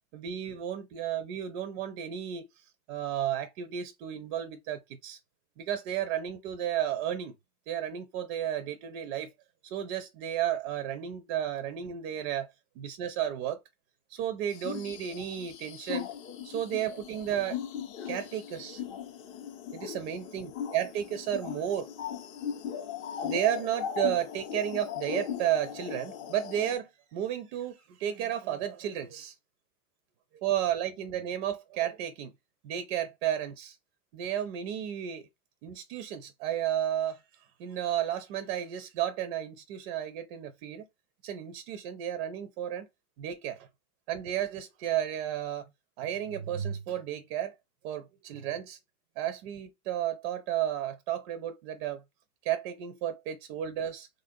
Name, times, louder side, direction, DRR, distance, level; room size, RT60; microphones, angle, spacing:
voice 1, 0.1-2.5 2.9-5.2 5.6-7.3 7.7-9.3 9.6-12.5 12.8-13.6 14.1-16.1 16.4-17.6 18.1-18.8 19.7-21.9 23.2-29.3 30.3-32.3 32.6-33.8 34.1-35.3 35.6-37.2 37.6-40.9 41.2-42.9 43.2-43.6 44.1-45.7 46.0-47.5 47.8-48.8 49.2-52.0 52.4-54.1, right 10 dB, 45° right, 0.5 m, -33 dB
sound 1, 14.5-26.8, left 8 dB, 30° left, 0.5 m, -38 dB
3.2 x 2.5 x 2.5 m
hypercardioid pair, 120°, 43 cm